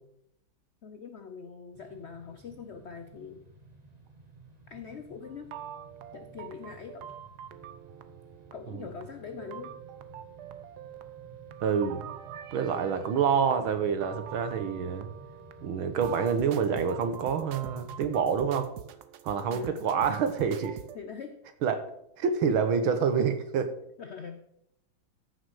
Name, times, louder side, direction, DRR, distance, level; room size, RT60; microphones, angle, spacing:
voice 1, 0.8-3.5 4.7-5.6 6.1-7.2 8.5-9.8 19.5-19.9 20.9-21.4 24.0-24.5, left 6 dB, 80° left, 8 dB, 0.6 m, -43 dB
sound 1, 1.7-18.6, right 3 dB, 20° right, 1.4 m, -53 dB
sound 2, 5.2-21.0, right 9 dB, 65° right, 1.2 m, -45 dB
voice 2, 11.6-12.1 12.5-15.1 15.6-18.7 19.2-20.8 21.6-21.8 22.2-23.7, right 6 dB, 90° right, 9 dB, 2.0 m, -27 dB
14.5 x 6.5 x 4.8 m, 0.75 s
omnidirectional pair, 2.2 m